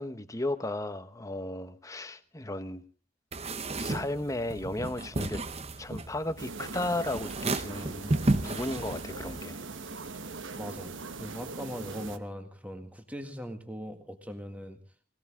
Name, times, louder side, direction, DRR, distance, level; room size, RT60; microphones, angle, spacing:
voice 1, 0.0-2.8 3.8-5.4 5.8-8.1 8.4-9.6, left 1 dB, 15° left, 11 dB, 1.0 m, -34 dB
sound 1, 3.3-9.4, right 2 dB, 30° right, 0.8 m, -33 dB
sound 2, 6.4-12.2, right 3 dB, 65° right, 1.2 m, -41 dB
voice 2, 10.5-10.9 11.2-14.8, equal, 5° right, 6 dB, 1.8 m, -40 dB
20.0 x 18.5 x 3.7 m, 0.37 s
head